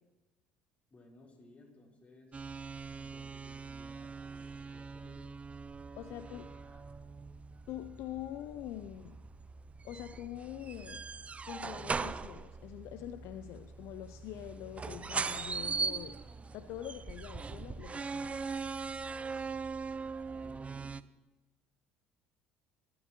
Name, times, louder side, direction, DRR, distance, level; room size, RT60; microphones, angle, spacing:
voice 1, 0.9-2.4 2.9-5.3 6.0-6.9 19.9-21.0, left 2 dB, 25° left, -1 dB, 4.1 m, -60 dB
sound 1, 2.3-21.0, right 4 dB, 25° right, 0.6 m, -41 dB
voice 2, 6.0-6.5 7.7-9.2 9.8-11.1 11.4-18.4, left 12 dB, 60° left, 10 dB, 0.6 m, -44 dB
26.0 x 12.5 x 3.1 m, 1.1 s
hypercardioid pair, 65°, 5 cm